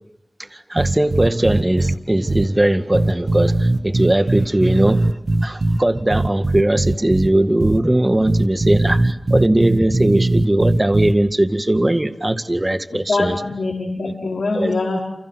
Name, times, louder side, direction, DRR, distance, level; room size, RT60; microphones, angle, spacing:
voice 1, 0.4-5.1 5.4-13.4 14.5-14.7, right 1 dB, 25° right, 10 dB, 2.0 m, -19 dB
sound 1, 0.8-2.0 2.3-2.5 2.9-5.8 6.1-7.3 7.6-7.8 8.3-11.1, right 2 dB, 55° right, 1.6 m, -19 dB
voice 2, 12.9-15.0, left 3 dB, 85° left, -2 dB, 4.9 m, -23 dB
29.5 x 28.5 x 6.4 m, 0.85 s
wide cardioid pair, 60°, 0 cm